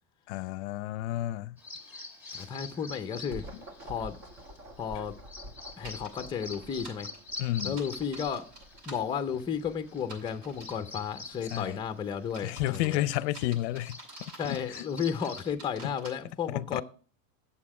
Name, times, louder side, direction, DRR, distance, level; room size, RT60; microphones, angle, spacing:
voice 1, 0.3-1.6 5.0-5.1 7.4-7.8 11.5-11.8 12.4-14.0 14.5-14.8 16.5-16.8, left 15 dB, 65° left, 0.5 m, -31 dB
Bird vocalization bird call bird song, 1.6-15.5, left 3 dB, 5° right, 1.8 m, -46 dB
voice 2, 2.3-3.4 3.8-4.2 4.8-5.1 5.8-7.1 7.6-8.5 8.9-13.0 14.4-16.8, left 7 dB, 15° left, 0.6 m, -33 dB
sound 1, 2.9-12.3, equal, 40° right, 1.4 m, -49 dB
sound 2, 5.8-6.1 6.5-9.0 10.0-10.8 11.4-11.7 12.2-14.7 15.0-16.1, right 2 dB, 70° right, 5.7 m, -48 dB
8.5 x 7.5 x 4.8 m
supercardioid pair, 140°, 36 cm